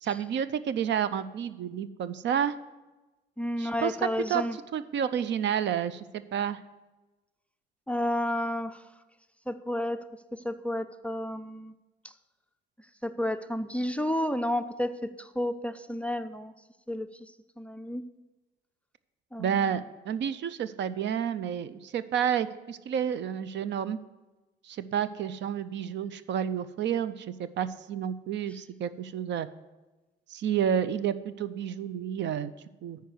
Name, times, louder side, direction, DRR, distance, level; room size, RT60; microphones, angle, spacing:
voice 1, 0.0-2.6 3.6-4.0 4.3-4.4 4.7-6.6 19.4-24.0 24.6-29.5 30.3-32.5 32.8-33.0, right 8 dB, 65° right, 14 dB, 0.5 m, -30 dB
voice 2, 3.4-4.6 7.9-8.8 9.5-11.7 13.0-16.5 16.9-17.1 17.6-18.0 19.3-19.5, left 1 dB, 5° left, 12 dB, 0.4 m, -31 dB
9.3 x 4.7 x 7.7 m, 1.1 s
cardioid pair, 90°, 20 cm